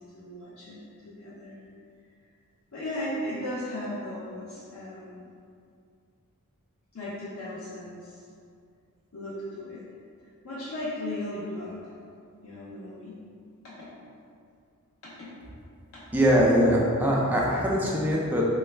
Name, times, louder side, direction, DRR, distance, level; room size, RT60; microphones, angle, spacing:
voice 1, 0.0-1.6 2.7-5.3 6.9-8.2 9.1-9.8 10.4-12.0 12.4-13.2 13.6-13.9 15.0-15.3 15.9-16.0, left 1 dB, 75° left, -9 dB, 0.6 m, -36 dB
voice 2, 16.1-18.4, equal, 10° right, -4 dB, 0.4 m, -22 dB
3.0 x 2.3 x 3.2 m, 2.4 s
head